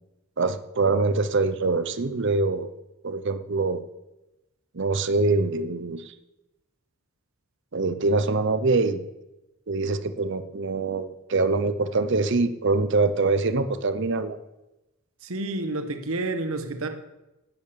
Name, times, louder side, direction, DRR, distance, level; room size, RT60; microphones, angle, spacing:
voice 1, 0.4-2.7 3.0-3.8 4.7-6.1 7.7-9.1 9.7-14.4, right 3 dB, 55° right, 0.7 m, -24 dB
voice 2, 15.2-16.9, right 2 dB, 75° right, 1.2 m, -29 dB
10.5 x 9.3 x 6.8 m
head